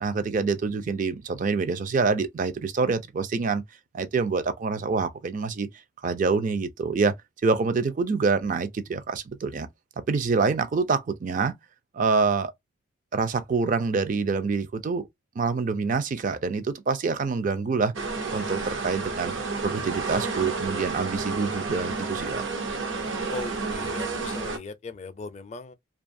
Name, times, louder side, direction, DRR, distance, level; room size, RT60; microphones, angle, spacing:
voice 1, 0.0-3.6 3.9-5.7 6.0-7.1 7.4-9.7 10.1-11.5 11.9-12.5 13.1-15.1 15.4-17.9 18.3-19.4 19.6-22.5, right 4 dB, 40° right, 0.4 m, -26 dB
sound 1, 17.9-24.6, right 4 dB, 75° right, 0.7 m, -31 dB
voice 2, 23.3-25.7, left 3 dB, 35° left, 0.4 m, -38 dB
2.5 x 2.3 x 2.5 m
head